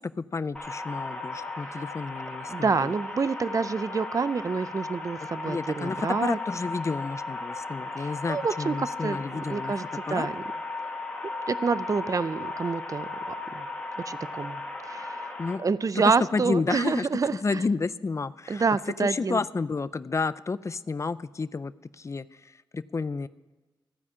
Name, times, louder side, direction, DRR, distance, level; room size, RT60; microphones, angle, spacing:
voice 1, 0.0-2.9 5.5-9.7 10.1-10.3 15.4-15.6 16.0-17.1 17.4-18.6 19.0-23.3, left 4 dB, 35° left, 16 dB, 0.4 m, -31 dB
sound 1, 0.6-15.6, left 3 dB, 10° left, 1.8 m, -36 dB
voice 2, 2.5-6.4 8.0-9.2 9.5-9.8 10.1-10.4 11.5-13.7 14.1-15.3 15.6-17.6 18.5-19.4, right 5 dB, 40° right, 16 dB, 0.4 m, -28 dB
14.5 x 4.9 x 8.5 m, 1.2 s
cardioid pair, 60°, 9 cm